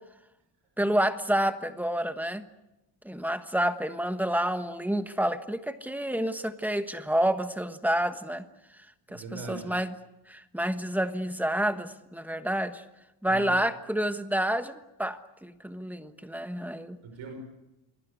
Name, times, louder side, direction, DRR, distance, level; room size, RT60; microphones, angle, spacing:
voice 1, 0.8-2.5 3.0-8.4 9.1-9.9 10.3-12.8 13.2-17.0, right 1 dB, 5° right, 9 dB, 1.3 m, -29 dB
voice 2, 9.1-9.7 13.3-13.6 17.0-17.3, right 4 dB, 85° right, 5 dB, 5.7 m, -40 dB
27.5 x 22.0 x 8.2 m, 0.93 s
cardioid pair, 165°, 49 cm